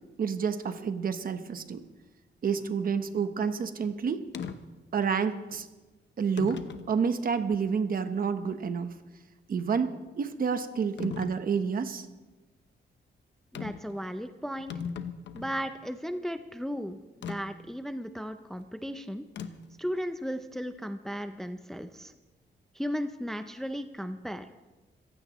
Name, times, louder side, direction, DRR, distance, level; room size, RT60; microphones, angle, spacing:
voice 1, 0.2-1.8 2.4-4.2 4.9-5.7 6.2-9.0 9.5-12.1, right 6 dB, 50° right, 9 dB, 1.0 m, -29 dB
sound 1, 4.3-4.6 5.5-5.6 6.4-6.9 7.5-7.6 11.0-11.4 13.5-13.9 14.2-14.3 14.5-15.6 17.2-17.4 19.4-19.8, left 6 dB, 70° left, 0.9 m, -37 dB
voice 2, 13.5-14.7 15.3-17.0 17.2-19.3 19.8-22.1 22.8-24.5, equal, ahead, 8 dB, 0.5 m, -35 dB
25.5 x 15.5 x 3.1 m, 1.1 s
wide cardioid pair, 170°, 19 cm